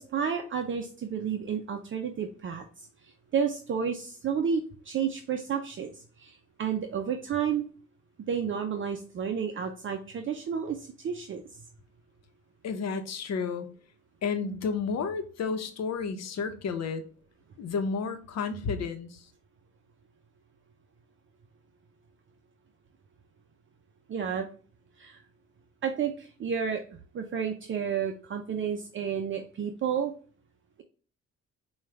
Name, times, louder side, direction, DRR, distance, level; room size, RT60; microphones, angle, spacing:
voice 1, 0.0-7.6 8.3-11.4 24.1-24.5 25.0-25.2 25.8-30.1, right 7 dB, 40° right, 0.5 m, -31 dB
voice 2, 12.6-13.7 14.2-17.0 17.6-19.3, left 5 dB, 60° left, 0.8 m, -31 dB
4.8 x 2.3 x 3.2 m
cardioid pair, 90°, 30 cm